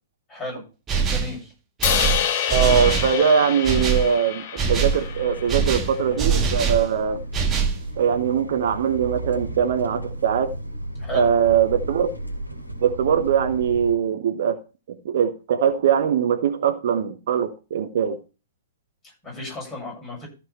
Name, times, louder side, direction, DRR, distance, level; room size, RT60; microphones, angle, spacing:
voice 1, 0.3-0.6 1.1-1.5 11.0-11.3 19.0-20.3, left 2 dB, 20° left, -1 dB, 7.5 m, -35 dB
sound 1, 0.9-1.4 1.8-3.2 3.6-4.1 4.6-5.0 5.5-6.9 7.3-7.8, right 5 dB, 20° right, 1.4 m, -23 dB
Crash cymbal, 1.8-6.0, left 9 dB, 40° left, 1.1 m, -27 dB
voice 2, 2.5-7.2 8.0-10.5 11.1-12.1 12.8-14.6 14.9-18.2, right 7 dB, 50° right, 9 dB, 1.1 m, -21 dB
sound 2, 4.6-13.9, right 1 dB, 90° right, 2.1 m, -34 dB
14.0 x 5.2 x 5.8 m, 0.33 s
figure-of-eight pair, 110°, 0 cm